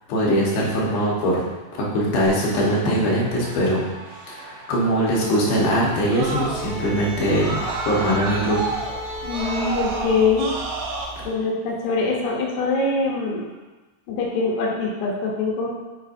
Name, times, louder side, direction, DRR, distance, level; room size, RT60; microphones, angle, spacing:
voice 1, 0.1-1.4 1.8-3.9 4.2-7.6 7.9-8.7, equal, 90° left, -5 dB, 3.3 m, -21 dB
Screaming, 2.3-6.9 7.2-11.1, right 4 dB, 75° right, 2.3 m, -32 dB
sound 1, 6.2-11.2, right 1 dB, 60° right, 1.1 m, -35 dB
voice 2, 9.2-10.5 11.2-13.5 14.1-15.7, left 4 dB, 70° left, -2 dB, 2.1 m, -23 dB
8.0 x 5.1 x 2.7 m, 1.2 s
omnidirectional pair, 4.2 m